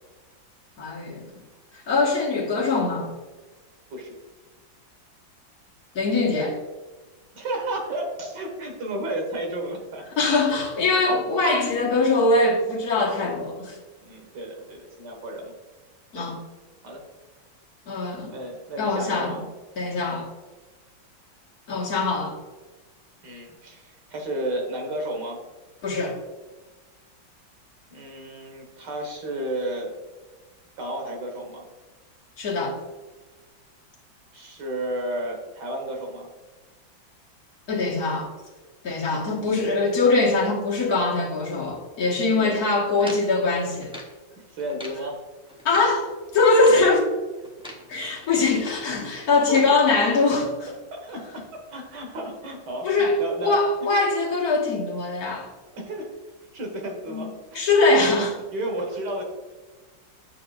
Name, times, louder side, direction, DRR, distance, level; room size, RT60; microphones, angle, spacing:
voice 1, 0.8-1.2 1.9-3.1 5.9-6.6 10.2-13.8 16.1-16.4 17.9-18.3 18.8-19.4 19.8-20.3 21.7-22.4 25.8-26.2 32.4-32.8 37.7-38.3 38.8-43.9 45.7-46.1 46.3-47.1 47.9-50.7 52.8-55.5 57.1-57.3 57.5-58.3, left 3 dB, 50° left, -3 dB, 1.9 m, -22 dB
voice 2, 7.3-10.0 11.7-11.8 12.4-12.5 14.0-15.5 16.1-16.3 16.8-17.0 18.3-19.4 20.0-20.3 23.2-25.4 27.9-30.0 30.8-31.7 34.3-36.3 42.4-42.6 44.4-45.2 49.5-49.6 50.9-51.4 51.7-53.6 53.9-54.0 55.7-56.1 56.5-57.6 58.1-59.2, right 1 dB, 60° right, 2 dB, 2.1 m, -32 dB
sound 1, 43.0-44.2 44.6-45.0 45.5-46.0 46.5-46.9 47.4-47.9 48.2-48.9 49.3-49.7, left 1 dB, 5° right, 0.4 m, -41 dB
8.3 x 7.0 x 2.4 m, 1.2 s
omnidirectional pair, 2.1 m